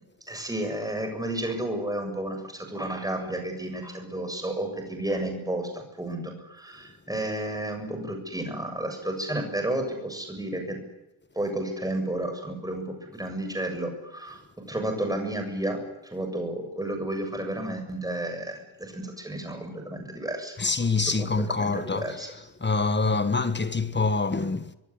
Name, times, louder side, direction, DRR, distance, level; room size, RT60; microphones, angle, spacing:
voice 1, 0.3-10.8 11.4-15.8 16.1-20.6 21.2-21.3 21.6-22.3, right 1 dB, 5° right, 7.3 m, -32 dB
voice 2, 20.6-22.2 22.6-24.7, left 3 dB, 20° left, 1.5 m, -25 dB
25.0 x 23.0 x 10.0 m
wide cardioid pair, 170°, 48 cm